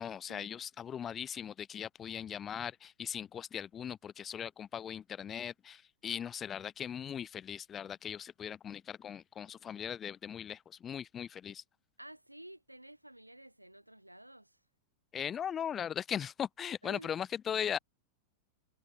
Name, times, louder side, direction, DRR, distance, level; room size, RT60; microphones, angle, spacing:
voice 1, 0.0-11.6 15.1-17.8, left 8 dB, 25° left, 1.1 m, -39 dB
voice 2, 12.0-14.6 16.8-17.1, right 1 dB, 85° right, 2.8 m, -52 dB
figure-of-eight pair, 90°, 0 cm